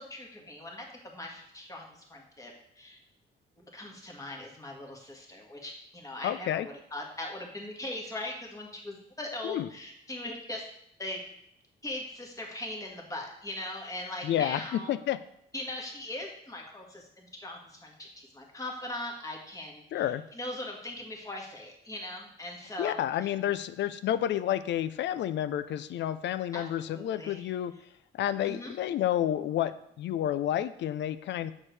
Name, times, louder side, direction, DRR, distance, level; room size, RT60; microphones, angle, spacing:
voice 1, 0.0-3.0 3.6-10.7 11.0-11.2 11.8-14.9 15.5-20.1 20.3-23.3 26.5-27.4 28.4-28.7, left 1 dB, 15° left, -1 dB, 1.7 m, -40 dB
voice 2, 6.2-6.7 9.4-9.7 14.2-15.2 19.9-20.2 22.8-27.7 28.1-31.5, left 11 dB, 65° left, 14 dB, 0.4 m, -30 dB
7.3 x 6.5 x 3.3 m, 0.73 s
cardioid pair, 90°, 20 cm